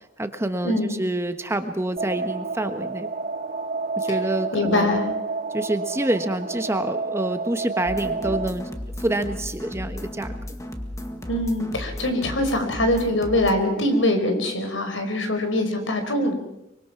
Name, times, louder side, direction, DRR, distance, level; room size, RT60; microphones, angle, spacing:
voice 1, 0.2-3.1 4.0-5.0 5.5-8.7 9.0-10.4, right 1 dB, 15° right, 8 dB, 1.2 m, -27 dB
sound 1, 2.0-8.5, right 4 dB, 45° right, 1.6 m, -29 dB
voice 2, 4.5-5.1 11.3-16.3, left 1 dB, 80° left, 6 dB, 4.7 m, -23 dB
sound 2, 7.9-13.5, left 1 dB, 15° left, 1.9 m, -35 dB
24.5 x 24.0 x 5.9 m, 0.87 s
head